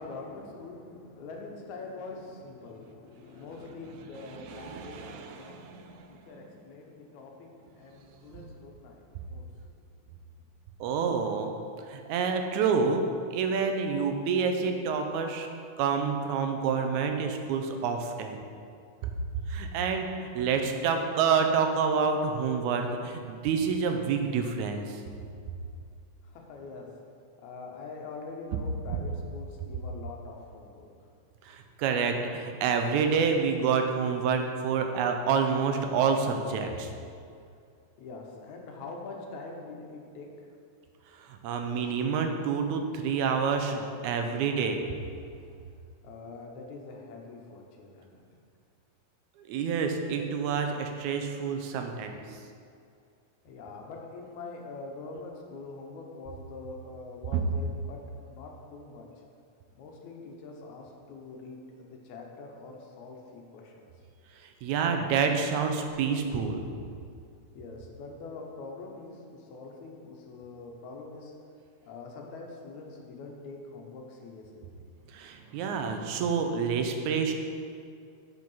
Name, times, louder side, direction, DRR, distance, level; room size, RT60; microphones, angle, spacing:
voice 1, 0.0-9.7 26.2-26.9 27.4-30.9 38.0-40.5 46.0-48.2 53.5-59.1 59.8-63.8 67.5-71.3 71.8-74.7, left 3 dB, 80° left, 1 dB, 2.3 m, -44 dB
voice 2, 4.3-6.1 8.4-8.5 10.8-11.5 11.9-13.0 13.3-15.5 15.8-18.4 19.0-19.1 19.5-25.0 31.4-36.9 41.2-44.8 49.5-52.2 64.6-66.7 75.1-77.3, right 5 dB, 85° right, 5 dB, 2.1 m, -28 dB
7.7 x 5.4 x 5.5 m, 2.3 s
omnidirectional pair, 3.3 m